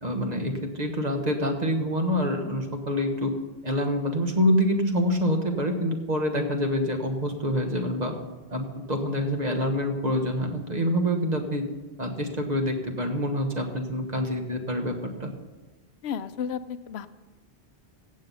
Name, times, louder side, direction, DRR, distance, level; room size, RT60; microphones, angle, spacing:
voice 1, 0.0-3.3 3.6-8.1 8.5-11.6 12.0-15.3, equal, 40° right, 4 dB, 1.4 m, -26 dB
voice 2, 16.0-17.1, left 7 dB, 80° left, 13 dB, 0.8 m, -32 dB
15.5 x 7.6 x 5.5 m, 1.2 s
omnidirectional pair, 1.1 m